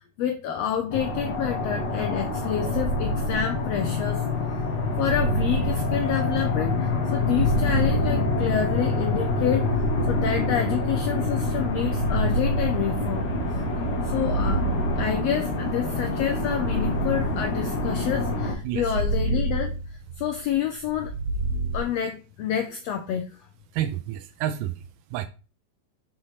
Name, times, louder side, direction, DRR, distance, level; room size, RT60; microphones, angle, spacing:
voice 1, 0.2-4.3 5.0-13.3 14.0-14.7 15.0-19.7 20.2-21.1 21.7-23.3, left 9 dB, 90° left, 1.4 m, -28 dB
sound 1, 0.9-18.5, left 2 dB, 45° left, 1.6 m, -27 dB
sound 2, 2.5-4.0 4.8-6.5 7.0-8.8 9.4-11.0 11.7-13.5 14.0-15.6 16.4-18.0 18.6-20.4 20.9-21.8, right 2 dB, 50° right, 2.7 m, -29 dB
voice 2, 23.7-25.3, right 11 dB, 90° right, 2.2 m, -30 dB
6.3 x 5.6 x 3.2 m
omnidirectional pair, 3.7 m